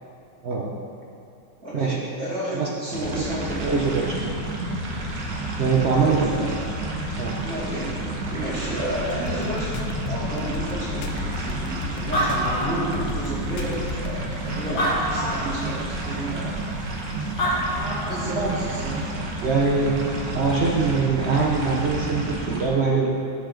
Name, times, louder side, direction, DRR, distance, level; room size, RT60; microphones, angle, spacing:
voice 1, 0.4-0.7 1.7-2.0 2.5-2.7 3.6-4.2 5.6-6.5 7.2-7.4 18.4-18.5 19.4-20.0 20.3-23.1, right 4 dB, 85° right, -2 dB, 0.5 m, -23 dB
voice 2, 1.6-3.7 6.0-6.6 7.4-9.7 10.0-16.5 18.1-19.2, right 1 dB, 45° right, -9 dB, 3.1 m, -32 dB
Liquid Mud Organic viscous Squishy gloopy, 2.9-22.7, right 2 dB, 60° right, 1.7 m, -30 dB
sound 1, 9.1-14.2, left 6 dB, 75° left, 1.4 m, -33 dB
Animal, 11.7-11.8 11.9-13.4 14.0-14.1 14.6-15.6 17.1-17.2 17.4-18.3, equal, 50° left, 2.5 m, -26 dB
14.0 x 6.5 x 3.8 m, 2.6 s
omnidirectional pair, 2.3 m